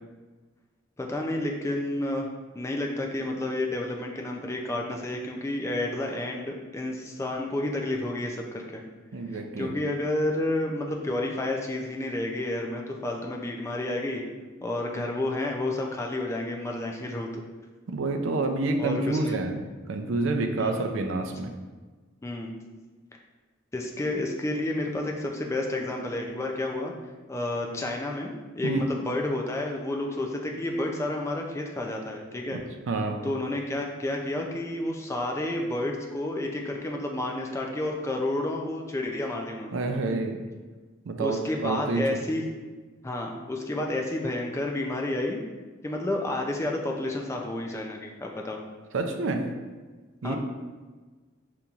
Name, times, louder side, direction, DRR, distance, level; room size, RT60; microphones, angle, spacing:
voice 1, 1.0-2.3 2.5-8.8 9.3-14.2 14.6-17.4 18.8-19.3 20.6-20.7 22.2-22.5 23.7-26.9 27.3-32.6 33.2-39.8 41.2-42.4 43.0-45.4 45.8-48.6 50.2-50.4, left 1 dB, 15° left, 0 dB, 0.3 m, -30 dB
voice 2, 9.1-9.7 17.9-19.6 19.9-21.5 28.6-28.9 32.5-33.2 39.7-40.4 41.1-42.2 48.9-49.5 50.2-50.4, right 3 dB, 70° right, 5 dB, 0.4 m, -28 dB
5.2 x 2.9 x 2.4 m, 1.3 s
head